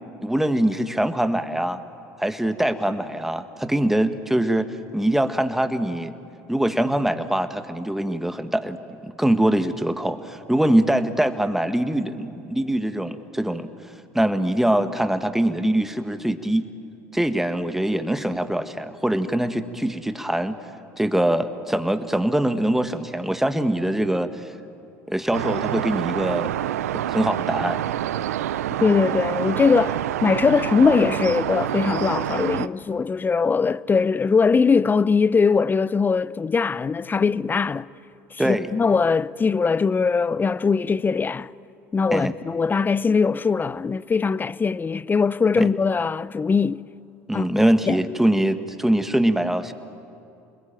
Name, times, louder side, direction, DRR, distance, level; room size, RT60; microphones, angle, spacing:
voice 1, 0.2-1.8 2.2-4.7 4.9-6.1 6.5-13.7 14.1-16.7 17.1-20.5 21.0-24.5 25.1-26.5 27.1-27.8 38.4-38.7 42.1-42.3 45.6-45.7 47.3-49.7, right 1 dB, 5° right, 1.7 m, -23 dB
sound 1, 25.3-32.7, right 12 dB, 90° right, 0.6 m, -27 dB
voice 2, 28.8-37.9 38.3-41.5 41.9-46.8 47.3-47.5 47.9-48.0, left 5 dB, 25° left, 0.6 m, -21 dB
29.0 x 21.0 x 9.1 m
hypercardioid pair, 75°, 8 cm